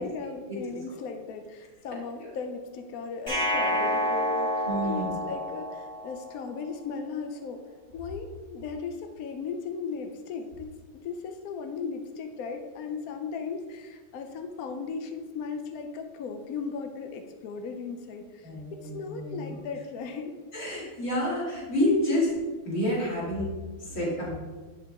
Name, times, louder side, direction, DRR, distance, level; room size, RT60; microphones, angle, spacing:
voice 1, 0.0-7.6 7.9-10.7 10.9-20.3, left 5 dB, 80° left, 6 dB, 0.8 m, -37 dB
sound 1, 3.3-6.3, equal, 15° left, 1.8 m, -28 dB
voice 2, 4.6-5.1 18.4-19.4 20.5-22.3 22.6-23.5 23.8-24.3, left 1 dB, 40° left, -6 dB, 2.6 m, -28 dB
8.1 x 6.1 x 3.5 m, 1.4 s
omnidirectional pair, 2.3 m